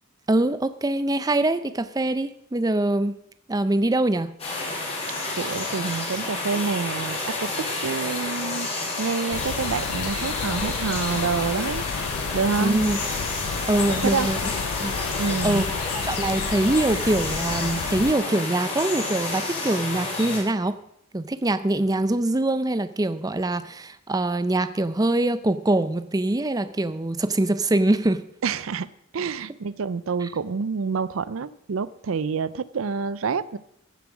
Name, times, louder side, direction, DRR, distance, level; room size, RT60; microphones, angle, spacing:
voice 1, 0.3-3.1 3.5-4.3 12.6-13.0 13.7-14.4 14.8-15.0 15.4-15.7 16.0-20.8 21.1-28.2 30.2-30.3, right 2 dB, 20° right, 12 dB, 0.5 m, -23 dB
sound 1, 4.4-20.4, left 2 dB, 30° left, 3.8 m, -30 dB
voice 2, 5.4-8.7 9.0-11.9 12.3-12.9 13.4-13.6 13.9-14.3 15.2-15.7 28.4-28.9 29.1-33.6, right 5 dB, 75° right, 17 dB, 0.5 m, -27 dB
sound 2, 9.3-18.1, left 7 dB, 85° left, 0.4 m, -32 dB
15.5 x 7.3 x 6.1 m, 0.75 s
head